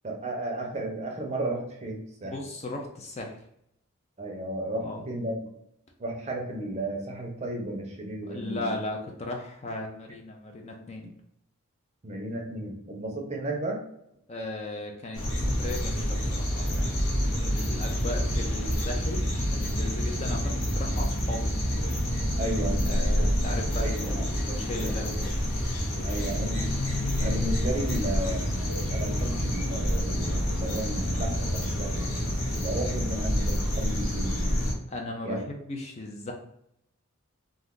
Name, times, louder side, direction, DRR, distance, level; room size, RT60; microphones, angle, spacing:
voice 1, 0.0-2.3 4.2-5.4 6.0-8.7 12.0-13.8 22.4-22.9 23.2-23.3 23.8-24.9 26.0-26.8 27.2-28.5 28.9-34.4 35.2-35.4, right 1 dB, 30° right, 1 dB, 0.6 m, -34 dB
voice 2, 2.2-3.4 4.8-5.0 8.3-11.1 14.3-17.1 17.4-21.6 22.9-25.3 25.9-26.3 34.9-36.3, left 2 dB, 30° left, 2 dB, 0.4 m, -37 dB
sound 1, 15.1-34.7, equal, 65° left, 0.8 m, -28 dB
2.5 x 2.4 x 3.6 m, 0.75 s
head